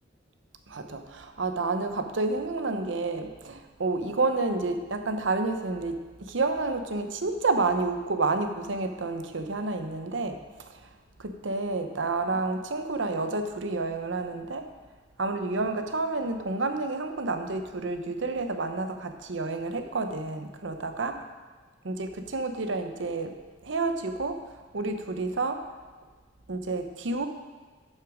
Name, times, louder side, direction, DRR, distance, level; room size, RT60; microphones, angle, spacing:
voice 1, 0.7-10.4 11.2-14.7 15.2-21.1 21.8-23.3 23.6-24.4 24.7-25.6 26.5-27.3, right 3 dB, 75° right, 7 dB, 0.8 m, -29 dB
11.0 x 6.5 x 5.0 m, 1.4 s
head